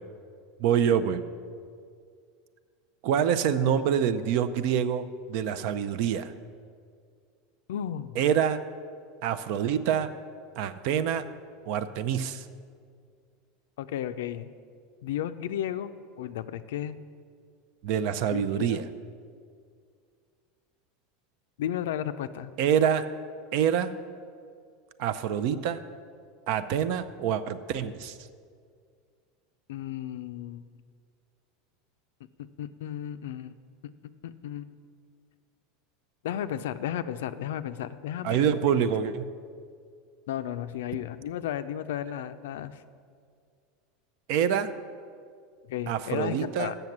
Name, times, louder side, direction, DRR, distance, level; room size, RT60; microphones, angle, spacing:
voice 1, 0.6-1.2 3.0-6.3 8.2-8.6 9.2-10.1 10.6-11.3 11.7-12.5 17.8-18.8 22.6-23.1 23.5-24.0 25.0-25.8 26.5-28.2 38.2-39.2 44.3-44.7 45.9-46.7, right 8 dB, 60° right, 12 dB, 0.5 m, -26 dB
voice 2, 7.7-8.2 13.8-14.5 15.0-15.9 16.2-17.0 18.3-18.8 21.6-22.5 29.7-30.7 32.6-33.5 34.2-34.7 36.2-38.5 40.3-42.8 45.7-46.8, left 10 dB, 85° left, 12 dB, 0.4 m, -33 dB
7.9 x 6.8 x 7.3 m, 2.2 s
supercardioid pair, 135°, 0 cm